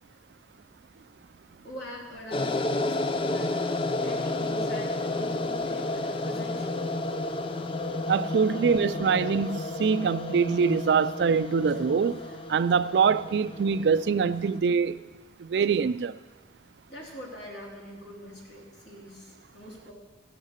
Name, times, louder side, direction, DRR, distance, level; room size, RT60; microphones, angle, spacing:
voice 1, 1.6-6.8 8.6-8.7 16.9-19.9, left 1 dB, 85° left, 3.3 m, -43 dB
sound 1, 2.3-14.6, left 2 dB, 30° left, 0.4 m, -31 dB
voice 2, 8.1-12.2 12.5-15.0 15.4-16.1, right 6 dB, 70° right, 0.4 m, -24 dB
15.0 x 6.4 x 6.5 m
head